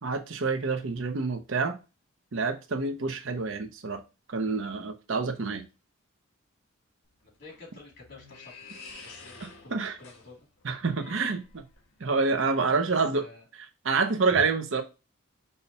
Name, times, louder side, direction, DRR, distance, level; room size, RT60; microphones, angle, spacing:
voice 1, 0.0-1.8 2.3-4.0 4.3-5.6 9.7-9.9 10.6-11.6 12.0-13.2 13.8-14.8, right 4 dB, 60° right, 0.7 m, -27 dB
sound 1, 7.0-12.0, left 4 dB, 85° left, 1.5 m, -49 dB
voice 2, 7.2-10.4 11.1-11.3 13.1-13.4 14.3-14.4, left 1 dB, 50° left, 2.6 m, -48 dB
5.6 x 2.3 x 4.0 m
head